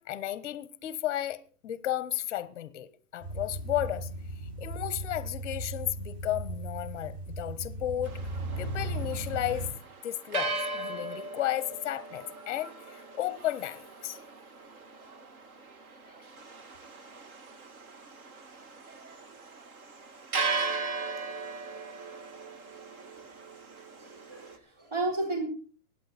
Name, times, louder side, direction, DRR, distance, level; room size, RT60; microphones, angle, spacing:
voice 1, 0.0-4.1 4.6-8.2 8.6-9.7 10.0-14.2, left 13 dB, 15° left, 0.6 m, -33 dB
sound 1, 3.2-9.7, right 1 dB, 45° right, 5.3 m, -37 dB
sound 2, 8.0-24.6, right 3 dB, 65° right, 2.2 m, -38 dB
voice 2, 23.8-25.4, right 2 dB, 20° right, 4.3 m, -33 dB
23.5 x 8.7 x 4.2 m
hypercardioid pair, 165°, 45 cm